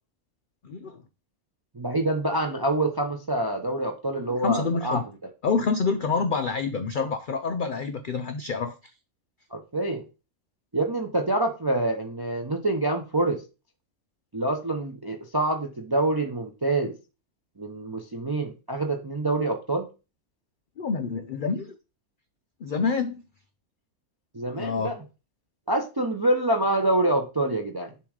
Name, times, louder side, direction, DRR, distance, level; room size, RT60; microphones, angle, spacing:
voice 1, 0.6-1.0 4.3-5.0 5.4-8.9 20.8-21.7 22.6-23.2 24.5-24.9, left 5 dB, 85° left, 0.4 m, -27 dB
voice 2, 1.7-5.0 9.5-10.0 10.7-13.4 14.3-17.0 17.6-19.9 24.3-24.9 25.7-27.9, right 2 dB, 40° right, 0.3 m, -26 dB
7.1 x 3.0 x 4.8 m
omnidirectional pair, 1.5 m